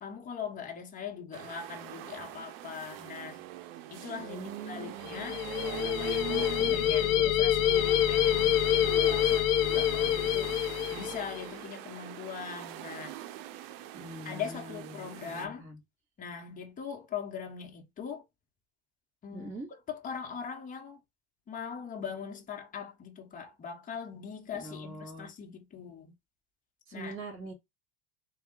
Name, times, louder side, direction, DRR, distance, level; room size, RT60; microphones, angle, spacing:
voice 1, 0.0-3.5 3.9-5.4 5.8-13.1 14.2-15.7 16.2-18.2 19.2-19.5 19.9-21.0 21.5-26.1 26.9-27.1, left 7 dB, 25° left, 1.0 m, -41 dB
sound 1, 1.3-15.5, right 13 dB, 70° right, 0.6 m, -42 dB
voice 2, 4.2-5.0 6.6-7.0 13.9-15.8 19.3-19.7 24.5-25.3 26.9-27.5, right 2 dB, 45° right, 2.1 m, -43 dB
sound 2, 5.0-11.4, left 10 dB, 70° left, 0.8 m, -26 dB
3.5 x 2.3 x 3.7 m
supercardioid pair, 120°, 31 cm